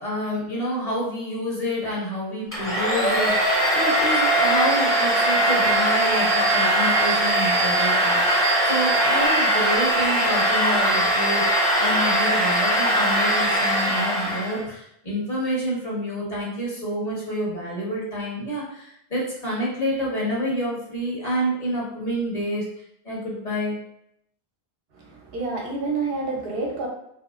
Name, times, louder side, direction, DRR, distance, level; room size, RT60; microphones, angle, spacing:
voice 1, 0.0-22.6 23.0-23.8, equal, 40° left, -6 dB, 1.1 m, -28 dB
Domestic sounds home sounds, 2.5-14.6, right 1 dB, 15° left, 0.7 m, -21 dB
voice 2, 24.9-26.9, right 3 dB, 65° right, 0 dB, 1.0 m, -28 dB
2.8 x 2.8 x 2.4 m, 0.75 s
omnidirectional pair, 1.1 m